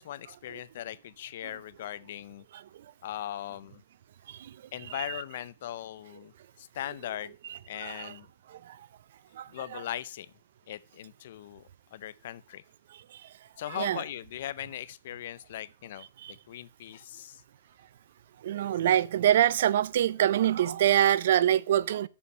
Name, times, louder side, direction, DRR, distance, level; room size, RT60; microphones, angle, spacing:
voice 1, 0.0-2.4 3.0-3.8 4.7-6.3 6.6-7.3 7.7-8.3 9.5-10.3 10.7-12.6 13.6-17.4, left 12 dB, 55° left, 0.6 m, -39 dB
voice 2, 4.9-5.2 7.5-8.2 8.5-8.8 9.3-9.8 13.1-13.2 13.7-14.0 16.2-16.3 18.4-22.1, right 11 dB, 60° right, 0.5 m, -26 dB
7.2 x 7.0 x 5.5 m
hypercardioid pair, 155°, 0 cm